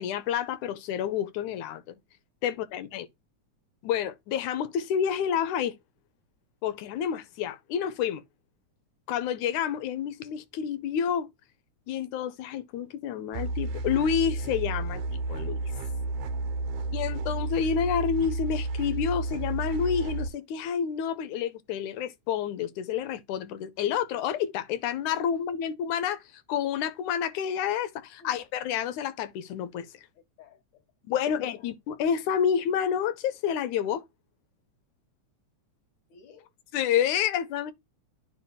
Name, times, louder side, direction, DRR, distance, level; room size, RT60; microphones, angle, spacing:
voice 1, 0.0-2.0 2.4-3.1 3.8-5.8 6.6-8.2 9.1-11.3 11.9-15.6 16.9-26.2 26.5-29.9 31.1-34.0 36.7-37.7, left 8 dB, 85° left, 2.3 m, -29 dB
sound 1, 13.3-20.3, right 2 dB, 65° right, 1.8 m, -31 dB
voice 2, 16.3-16.7 28.2-28.3 30.2-30.8 31.3-31.7 36.1-36.5, left 6 dB, 70° left, 2.6 m, -55 dB
9.4 x 5.5 x 2.3 m
omnidirectional pair, 3.3 m